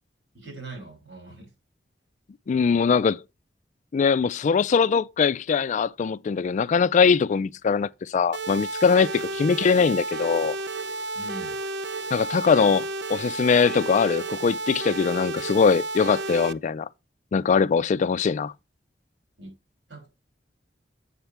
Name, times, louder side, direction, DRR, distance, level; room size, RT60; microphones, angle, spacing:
voice 1, 0.3-1.5 11.1-11.6 19.4-19.5 19.9-20.1, right 2 dB, 90° right, 4.7 m, -41 dB
voice 2, 2.5-3.2 3.9-10.6 12.1-16.9 17.3-18.5, left 5 dB, 40° left, 0.3 m, -22 dB
sound 1, 8.3-16.5, right 2 dB, 65° right, 0.5 m, -32 dB
8.0 x 5.8 x 3.3 m
head